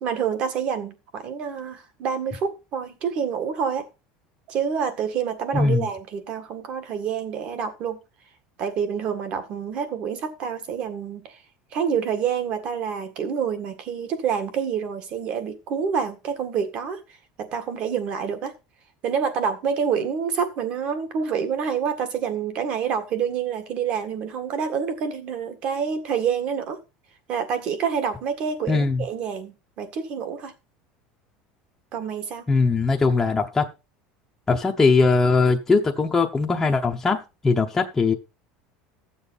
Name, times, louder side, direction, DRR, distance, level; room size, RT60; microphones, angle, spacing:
voice 1, 0.0-3.9 4.5-8.0 8.6-11.4 11.7-17.0 17.4-18.5 19.0-26.8 27.3-30.5 31.9-32.5, right 7 dB, 40° right, 1.8 m, -27 dB
voice 2, 5.5-5.9 28.7-29.0 32.5-33.7 34.5-38.1, left 4 dB, 10° left, 0.8 m, -20 dB
13.0 x 7.3 x 4.0 m
cardioid pair, 160°, 3 cm